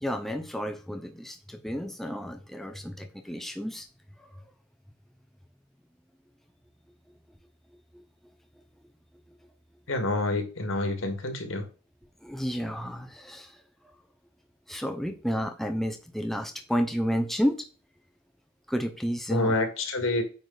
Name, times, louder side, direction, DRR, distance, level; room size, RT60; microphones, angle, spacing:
voice 1, 0.0-3.8 12.2-13.5 14.7-17.6 18.7-19.5, equal, ahead, 0.7 m, -31 dB
voice 2, 9.9-11.6 19.3-20.2, left 2 dB, 65° left, 1.9 m, -27 dB
9.2 x 4.9 x 3.9 m
head